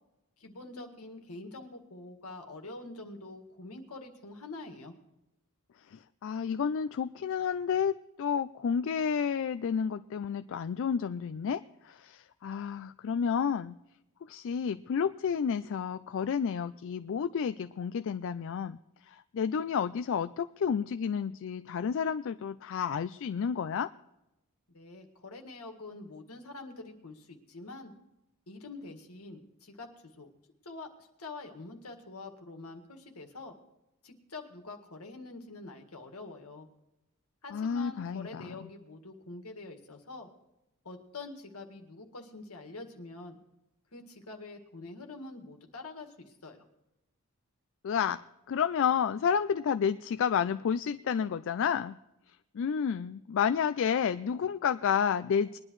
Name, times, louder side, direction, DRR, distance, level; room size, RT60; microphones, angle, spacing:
voice 1, 0.4-4.9 24.7-27.9 28.5-29.9 30.2-30.3 30.6-33.5 34.0-36.7 37.4-40.3 40.8-43.4 43.9-46.7, left 2 dB, 75° left, 5 dB, 1.9 m, -45 dB
voice 2, 5.9-13.8 14.3-23.9 37.5-38.7 47.8-48.2 48.5-52.0 52.5-55.6, left 7 dB, 60° left, 11 dB, 0.3 m, -30 dB
21.0 x 11.0 x 3.1 m, 0.92 s
head